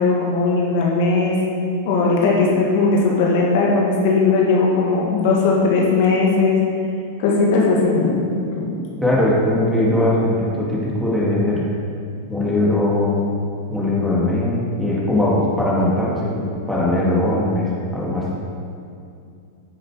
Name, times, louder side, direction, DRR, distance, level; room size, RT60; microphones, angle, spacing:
voice 1, 0.0-1.4 1.8-6.6 7.2-8.2 8.5-8.8, left 3 dB, 60° left, -3 dB, 1.9 m, -18 dB
voice 2, 9.0-11.7 12.3-13.3 13.7-18.3, left 1 dB, ahead, -7 dB, 2.3 m, -20 dB
9.7 x 6.5 x 4.9 m, 2.5 s
hypercardioid pair, 110°, 0 cm